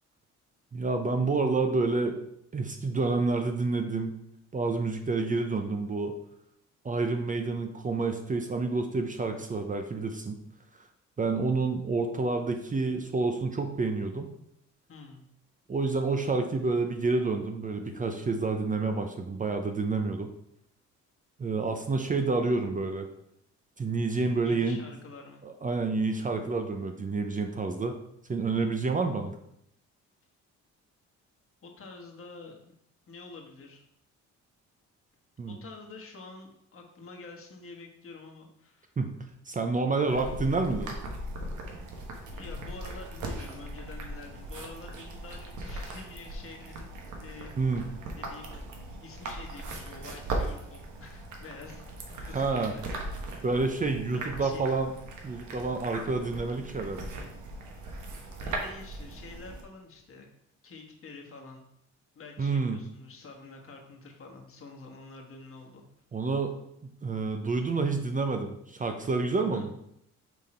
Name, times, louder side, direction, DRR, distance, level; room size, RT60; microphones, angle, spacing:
voice 1, 0.7-2.2 2.5-4.2 4.5-6.2 6.8-10.4 11.2-14.3 15.7-20.3 21.4-23.1 23.8-24.8 25.4-27.9 28.3-29.3 35.4-35.6 39.0-39.1 39.5-40.9 47.6-47.9 52.3-52.7 53.4-54.9 55.2-57.1 62.4-62.8 66.1-66.5 67.0-69.7, right 3 dB, 25° right, 5 dB, 0.6 m, -28 dB
voice 2, 14.9-15.2 24.4-25.4 31.6-32.6 33.1-33.8 35.5-38.9 40.1-40.5 42.3-46.9 47.2-47.5 48.2-48.5 49.0-53.4 54.1-54.7 58.4-60.3 60.6-61.7 62.1-65.8 69.5-69.6, left 3 dB, 45° left, 1 dB, 1.4 m, -47 dB
sound 1, 40.1-59.6, right 2 dB, 80° right, 1.2 m, -39 dB
6.0 x 3.7 x 4.3 m, 0.75 s
cardioid pair, 90°, 30 cm